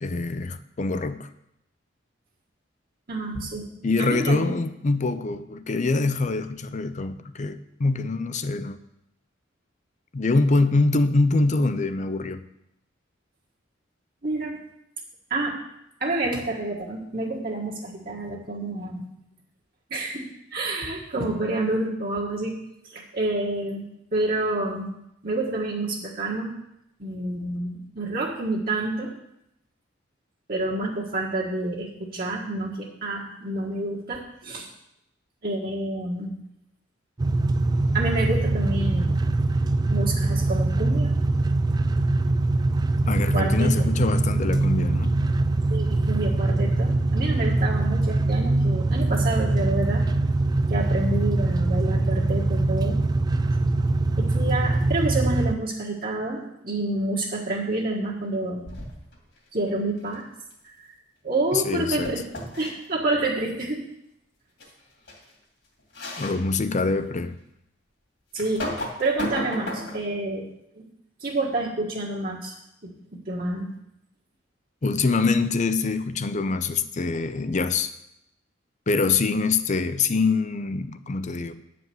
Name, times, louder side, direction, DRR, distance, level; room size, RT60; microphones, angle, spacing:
voice 1, 0.0-1.3 3.8-8.8 10.1-12.4 43.1-45.2 61.5-62.1 66.2-67.4 74.8-77.9 78.9-81.5, left 3 dB, 40° left, 11 dB, 0.5 m, -24 dB
voice 2, 3.1-3.7 4.0-4.5 14.2-14.6 15.3-15.5 16.0-19.0 19.9-20.2 20.5-22.5 22.9-23.8 24.1-24.9 25.2-26.5 27.0-29.1 30.5-34.7 35.4-36.3 37.9-39.2 39.9-41.1 43.3-43.7 45.7-50.0 50.7-52.9 54.2-58.7 59.5-60.2 60.8-60.9 61.2-62.2 62.6-63.8 68.3-70.5 70.7-70.8 71.2-72.5 72.8-72.9 73.3-73.7, right 2 dB, 50° right, -4 dB, 1.5 m, -28 dB
sound 1, 37.2-55.5, right 2 dB, 20° right, 0.3 m, -23 dB
sound 2, 58.7-59.2 62.0-62.7 64.6-64.7 65.1-65.2 65.9-66.4 67.0-67.1 68.4-70.1, left 1 dB, 60° left, 2.5 m, -33 dB
9.2 x 5.1 x 7.7 m, 0.81 s
head